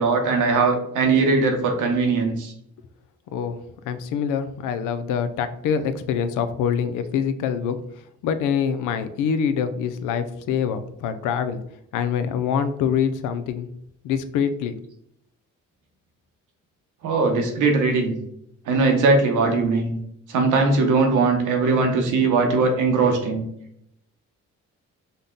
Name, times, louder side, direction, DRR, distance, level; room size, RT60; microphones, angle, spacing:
voice 1, 0.0-2.5 17.0-18.1 18.7-20.0 20.3-23.4, right 3 dB, 85° right, 3 dB, 1.1 m, -20 dB
voice 2, 3.3-11.6 11.9-13.7 14.0-14.8, left 7 dB, 90° left, 10 dB, 0.5 m, -25 dB
5.3 x 2.2 x 3.7 m, 0.73 s
cardioid pair, 90°, 30 cm